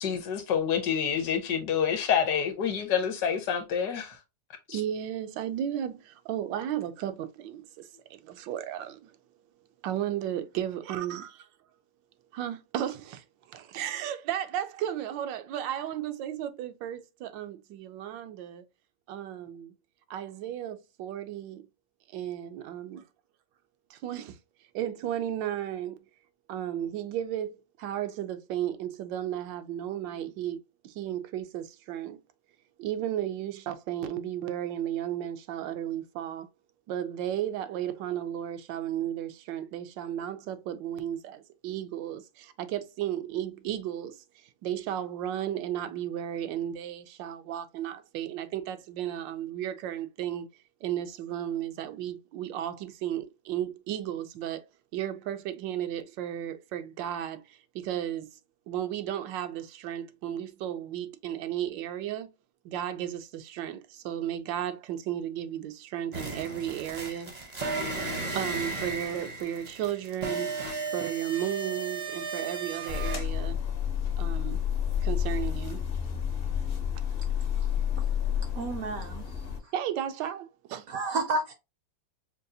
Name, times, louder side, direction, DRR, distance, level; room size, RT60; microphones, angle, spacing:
voice 1, 0.0-4.2 4.7-4.8, left 7 dB, 70° left, 1.2 m, -27 dB
voice 2, 4.7-9.1 9.8-11.4 12.3-18.6 19.1-19.7 20.1-21.7 22.1-23.0 23.9-24.4 24.7-26.0 26.5-32.2 32.8-36.5 36.9-50.5 50.8-54.6 54.9-58.3 58.7-62.3 62.6-67.3 68.3-73.6 74.2-74.6 75.0-75.8 79.7-80.9, right 11 dB, 85° right, 1.3 m, -34 dB
sound 1, 66.1-73.2, right 3 dB, 45° right, 0.5 m, -35 dB
sound 2, 72.9-79.6, left 9 dB, 55° left, 0.6 m, -30 dB
voice 3, 78.6-79.7 80.9-81.5, right 2 dB, 70° right, 0.8 m, -32 dB
5.2 x 2.3 x 2.7 m
omnidirectional pair, 1.9 m